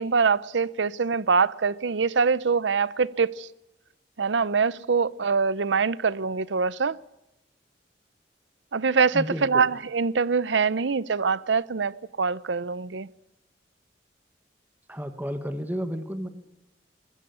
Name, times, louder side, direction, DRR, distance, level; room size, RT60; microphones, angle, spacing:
voice 1, 0.0-3.5 4.2-7.0 8.7-13.1, right 5 dB, 85° right, 0.7 m, -24 dB
voice 2, 9.1-9.7 14.9-16.3, equal, 10° right, 1.6 m, -32 dB
23.0 x 16.0 x 8.5 m
head